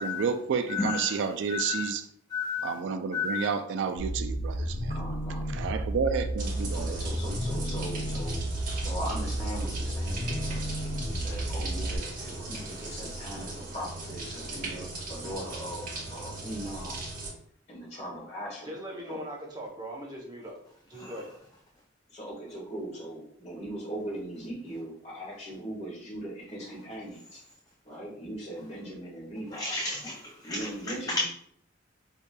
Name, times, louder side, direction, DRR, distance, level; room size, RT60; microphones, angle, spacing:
voice 1, 0.0-2.0 2.6-4.9 5.5-7.0, right 6 dB, 65° right, 9 dB, 0.3 m, -30 dB
voice 2, 0.7-1.2 1.5-1.9 2.3-2.8 3.1-3.5 12.5-13.0 16.6-16.7 21.0-21.2 29.5-31.2, left 4 dB, 20° left, 0 dB, 0.3 m, -33 dB
sound 1, 4.0-12.0, right 1 dB, 80° left, 0.6 m, -32 dB
voice 3, 4.5-5.5 6.7-8.4 8.8-10.6 10.9-17.0 17.7-18.7 19.1-19.2 22.1-27.4 27.8-29.7 30.4-31.2, right 1 dB, 35° left, -5 dB, 1.5 m, -39 dB
sound 2, 6.4-17.3, right 2 dB, 45° right, 1.0 m, -38 dB
voice 4, 18.6-20.6 20.9-21.3, equal, 20° right, -3 dB, 0.7 m, -40 dB
4.7 x 2.8 x 2.2 m, 0.67 s
head